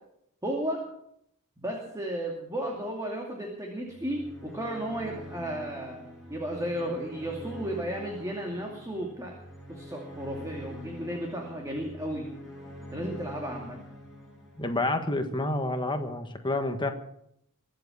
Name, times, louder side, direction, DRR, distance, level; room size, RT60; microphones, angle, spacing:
voice 1, 0.4-0.8 1.6-6.0 6.3-9.3 9.7-12.3 12.9-13.8, right 1 dB, 15° right, 0 dB, 2.5 m, -34 dB
sound 1, 3.9-15.2, equal, ahead, 7.6 m, -45 dB
voice 2, 14.5-16.9, left 2 dB, 20° left, 6 dB, 1.6 m, -29 dB
23.0 x 7.9 x 7.2 m, 0.75 s
head